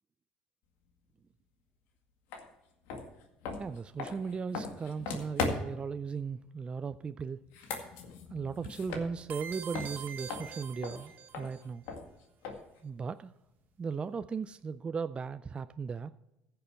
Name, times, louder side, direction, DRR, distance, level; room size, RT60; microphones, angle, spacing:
sound 1, 2.3-2.4 2.9-5.9 7.4-9.5 9.7-12.8, left 4 dB, 80° left, 1.9 m, -39 dB
voice 1, 3.6-7.4 8.3-11.8 12.8-13.3 13.8-16.1, right 5 dB, 30° right, 12 dB, 0.4 m, -37 dB
sound 2, 9.3-11.6, right 8 dB, 55° right, 1.3 m, -44 dB
15.0 x 6.9 x 4.4 m, 0.92 s
supercardioid pair, 85°, 4 cm